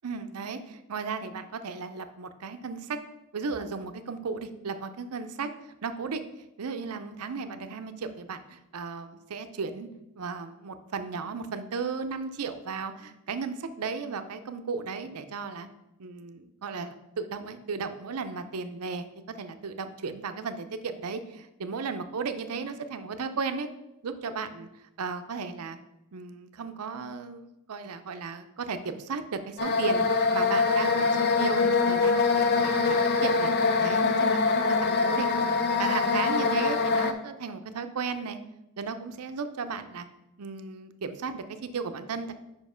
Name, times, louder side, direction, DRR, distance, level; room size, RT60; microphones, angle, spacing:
voice 1, 0.0-3.0 3.3-5.5 5.8-6.3 6.6-9.9 10.2-15.7 16.0-19.1 19.4-23.7 24.0-24.7 25.0-25.8 26.1-33.5 33.8-35.4 35.8-38.4 38.8-40.1 40.4-42.3, right 5 dB, 85° right, 9 dB, 0.6 m, -35 dB
sound 1, 29.6-37.1, left 4 dB, 45° left, 0.5 m, -24 dB
5.3 x 5.2 x 5.0 m, 0.91 s
head